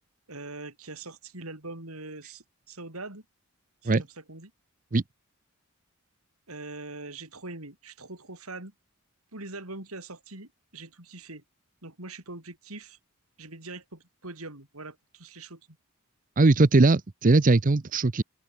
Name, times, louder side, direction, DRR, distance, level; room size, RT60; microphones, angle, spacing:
voice 1, 0.3-3.2 3.8-4.5 6.5-8.7 9.3-11.4 11.8-13.0 13.4-15.6, right 2 dB, 85° right, 5.9 m, -42 dB
voice 2, 16.4-18.2, right 3 dB, 40° right, 0.7 m, -20 dB
open air
head